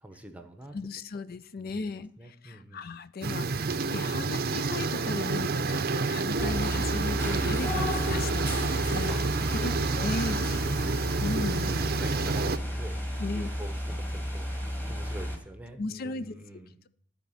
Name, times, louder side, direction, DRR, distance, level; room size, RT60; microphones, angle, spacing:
voice 1, 0.0-0.8 1.6-2.9 9.1-9.2 10.6-11.0 11.6-13.0 13.3-16.8, right 1 dB, 10° right, 6 dB, 0.9 m, -45 dB
voice 2, 0.7-9.2 9.5-10.5 11.2-11.8 13.2-13.5 15.8-16.6, left 3 dB, 50° left, 14 dB, 0.5 m, -36 dB
sound 1, 3.2-12.6, right 4 dB, 55° right, 0.6 m, -29 dB
sound 2, 6.4-15.4, equal, 10° left, 1.8 m, -32 dB
13.0 x 4.3 x 5.5 m, 0.67 s
head